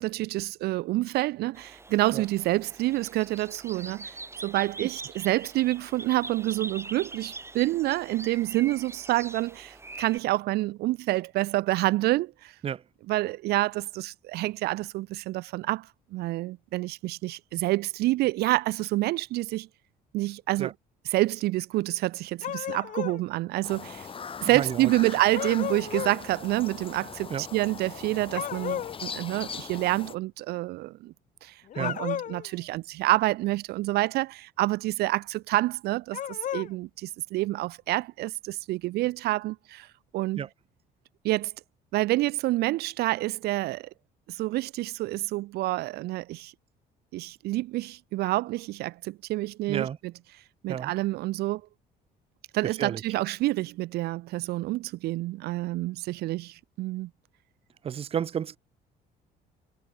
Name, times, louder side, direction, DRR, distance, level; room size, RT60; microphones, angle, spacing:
voice 1, 0.0-12.5 13.1-19.7 20.1-20.7 21.1-24.1 24.4-31.1 31.4-39.9 40.1-40.4 41.2-41.5 41.9-43.9 44.3-46.5 47.1-49.9 50.6-51.6 52.5-57.1, right 18 dB, 75° right, 0.4 m, -28 dB
sound 1, 1.5-10.2, right 3 dB, 15° right, 4.2 m, -43 dB
sound 2, 22.4-23.2 25.3-26.2 28.3-29.0 31.7-32.5 36.1-36.7, left 11 dB, 50° left, 0.7 m, -33 dB
sound 3, 23.6-30.1, left 6 dB, 30° left, 1.4 m, -41 dB
voice 2, 24.5-24.9 27.3-27.4 31.7-32.0 40.4-40.5 49.7-50.0 50.7-50.9 52.6-53.0 57.8-58.6, right 8 dB, 35° right, 0.6 m, -31 dB
cardioid pair, 110°, 17 cm